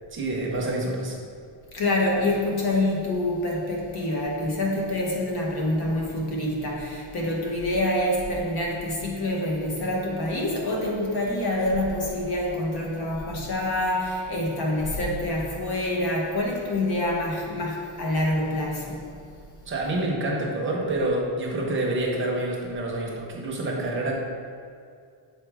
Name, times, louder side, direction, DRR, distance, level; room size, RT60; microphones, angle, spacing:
voice 1, 0.1-1.2 19.7-24.2, right 1 dB, 25° right, -2 dB, 0.8 m, -27 dB
voice 2, 1.7-19.0, left 1 dB, 50° left, -1 dB, 1.1 m, -26 dB
6.2 x 4.4 x 3.4 m, 2.3 s
cardioid pair, 180°, 49 cm